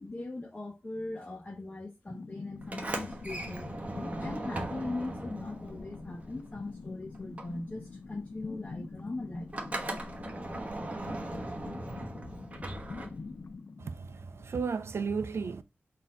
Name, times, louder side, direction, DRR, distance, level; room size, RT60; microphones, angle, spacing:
voice 1, 0.0-3.7 4.0-9.5, left 2 dB, 30° left, 1.0 m, -40 dB
sound 1, 2.1-14.7, left 4 dB, 60° left, 0.4 m, -45 dB
Sliding door, 2.6-6.9 7.1-13.5, right 2 dB, 35° right, 0.9 m, -39 dB
voice 2, 13.8-15.6, right 5 dB, 90° right, 0.4 m, -34 dB
4.1 x 2.7 x 3.7 m
wide cardioid pair, 80°, 4 cm